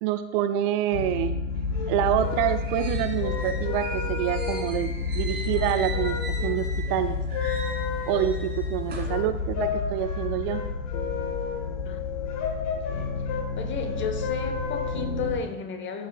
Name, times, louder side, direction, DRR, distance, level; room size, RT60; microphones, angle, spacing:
voice 1, 0.0-1.4 1.9-7.2 8.1-10.6, right 11 dB, 45° right, 10 dB, 0.4 m, -27 dB
sound 1, 0.9-15.4, left 4 dB, 75° left, 0.9 m, -31 dB
sound 2, 1.5-15.5, left 6 dB, 45° left, 1.4 m, -35 dB
sound 3, 2.2-6.9 7.3-9.2, right 2 dB, 25° right, 2.3 m, -40 dB
voice 2, 13.6-16.1, left 5 dB, 30° left, 6 dB, 1.0 m, -33 dB
11.0 x 6.2 x 2.3 m, 0.98 s
figure-of-eight pair, 70°, 39 cm